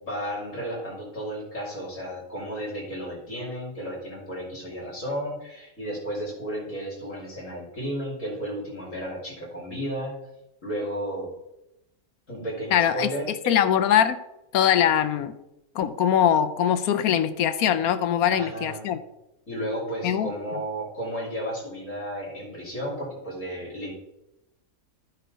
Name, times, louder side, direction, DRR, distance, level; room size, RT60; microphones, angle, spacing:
voice 1, 0.0-10.2 10.6-11.3 12.3-13.5 18.3-18.8 19.5-23.9, equal, 60° left, -4 dB, 3.1 m, -33 dB
voice 2, 12.7-13.1 13.5-14.2 14.5-15.3 15.7-19.0 20.0-20.3, left 9 dB, 80° left, 11 dB, 1.1 m, -22 dB
14.0 x 5.6 x 4.1 m, 0.91 s
omnidirectional pair, 1.5 m